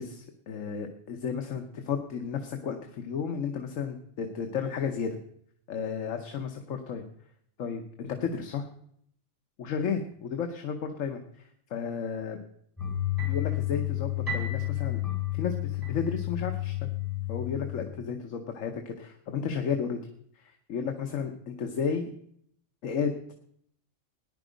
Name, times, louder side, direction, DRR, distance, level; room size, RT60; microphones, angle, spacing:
voice 1, 0.0-5.2 5.7-7.0 7.6-8.7 9.6-12.4 13.3-15.0 15.3-16.9 17.3-20.0 20.4-22.1 22.8-23.1, left 6 dB, 85° left, 4 dB, 1.3 m, -33 dB
sound 1, 12.8-17.8, left 12 dB, 15° left, 3.7 m, -31 dB
14.5 x 10.0 x 5.1 m, 0.68 s
omnidirectional pair, 1.3 m